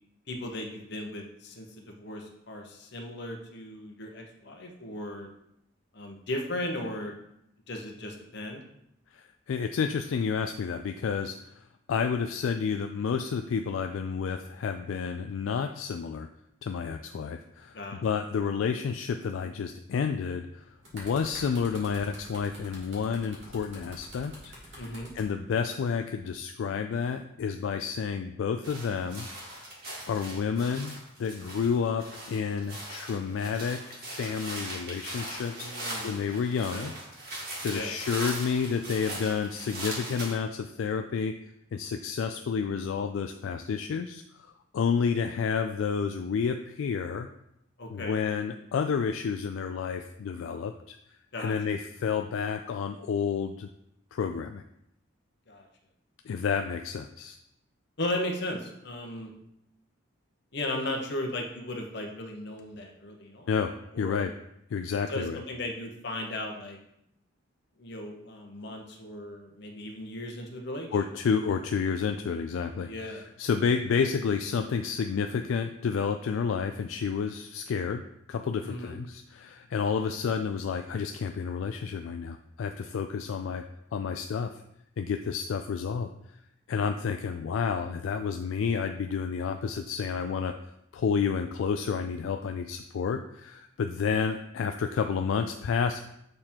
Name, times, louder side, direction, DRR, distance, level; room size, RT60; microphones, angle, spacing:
voice 1, 0.3-5.3 5.9-7.1 7.7-8.6 17.7-18.0 24.8-25.1 35.6-36.3 36.7-36.9 37.7-37.9 47.8-48.2 51.3-51.5 55.5-55.7 58.0-59.3 60.5-63.5 63.9-64.3 65.1-66.8 67.8-70.9 72.8-73.2 78.6-78.9, left 1 dB, 60° left, 2 dB, 1.0 m, -36 dB
voice 2, 9.1-11.6 11.9-16.3 16.6-20.7 20.9-24.9 25.1-29.3 29.6-29.7 30.1-35.7 36.0-36.9 37.6-41.4 41.7-44.5 44.7-47.3 47.9-51.0 51.4-53.7 54.1-54.6 56.3-57.4 63.5-64.3 64.7-65.4 70.9-83.6 83.9-84.6 85.0-86.1 86.7-90.5 90.9-96.0, left 6 dB, 80° left, 6 dB, 0.3 m, -30 dB
sound 1, 20.5-25.3 26.1-26.4, equal, 70° right, 2.3 m, -47 dB
sound 2, 28.6-40.3, right 1 dB, 50° right, 1.9 m, -40 dB
6.7 x 3.6 x 4.4 m, 0.79 s
head